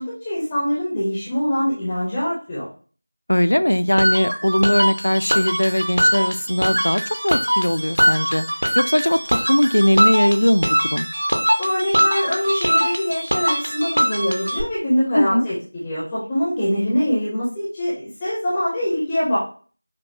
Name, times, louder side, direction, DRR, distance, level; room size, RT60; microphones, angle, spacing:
voice 1, 0.0-2.7 11.6-19.4, equal, 5° left, -9 dB, 0.4 m, -23 dB
voice 2, 3.3-8.4 8.8-11.1 15.1-15.5, equal, 80° left, 13 dB, 0.3 m, -19 dB
sound 1, 4.0-14.6, equal, 80° right, 0.8 m, -22 dB
5.7 x 2.1 x 2.6 m, 0.40 s
figure-of-eight pair, 180°, 0 cm